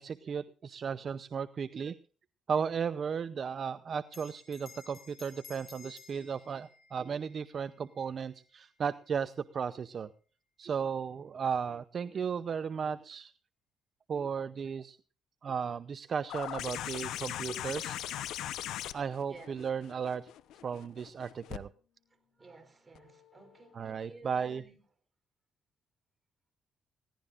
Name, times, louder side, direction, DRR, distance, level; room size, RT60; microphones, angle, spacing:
voice 1, 0.0-2.0 2.5-10.1 10.6-13.3 14.1-15.0 15.4-18.0 18.9-20.3 20.6-21.7 23.7-24.6, right 6 dB, 50° right, 0.6 m, -35 dB
Bell, 4.1-8.9, left 6 dB, 50° left, 3.9 m, -56 dB
sound 1, 16.3-21.6 23.0-23.1, left 12 dB, 85° left, 0.8 m, -39 dB
voice 2, 22.4-24.8, right 3 dB, 25° right, 3.8 m, -53 dB
20.5 x 17.0 x 2.5 m
cardioid pair, 90°, 0 cm